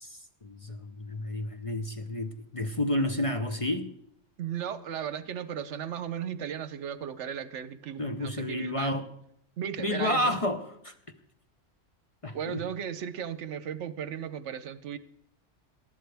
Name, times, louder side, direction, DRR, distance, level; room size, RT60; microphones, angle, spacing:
voice 1, 0.0-3.9 8.0-9.0 9.8-10.9 12.2-12.6, left 1 dB, 30° left, 7 dB, 0.8 m, -31 dB
voice 2, 4.4-9.0 9.6-10.3 12.3-15.0, right 8 dB, 70° right, 14 dB, 1.0 m, -36 dB
19.5 x 12.5 x 3.5 m, 0.73 s
omnidirectional pair, 1.3 m